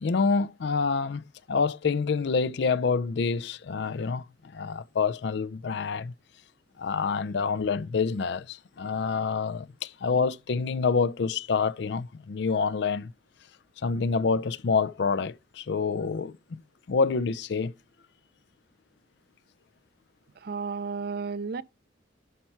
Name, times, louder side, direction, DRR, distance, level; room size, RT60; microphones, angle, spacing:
voice 1, 0.0-1.2 1.5-4.2 4.5-6.1 6.8-13.1 13.8-16.6 16.9-17.7, left 5 dB, 60° left, 0.4 m, -27 dB
voice 2, 20.4-21.6, right 5 dB, 50° right, 0.5 m, -32 dB
12.0 x 4.3 x 4.5 m
head